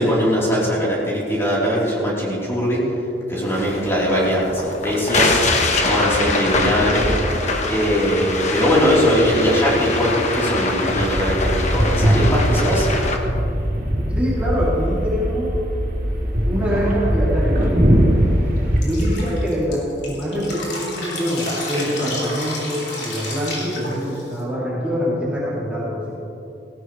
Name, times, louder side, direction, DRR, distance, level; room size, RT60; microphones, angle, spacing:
voice 1, 0.0-2.8 3.3-5.4 5.8-7.1 7.7-12.9, equal, 15° left, -7 dB, 3.9 m, -20 dB
sound 1, 3.5-13.2, left 2 dB, 40° left, 1.4 m, -23 dB
sound 2, 10.9-18.8, equal, 50° right, 3.7 m, -20 dB
voice 2, 14.1-15.5 16.5-18.4 18.8-26.1, equal, 10° right, -9 dB, 3.0 m, -24 dB
Drip, 18.8-24.4, left 2 dB, 70° left, 3.9 m, -31 dB
19.0 x 16.5 x 3.3 m, 2.9 s
head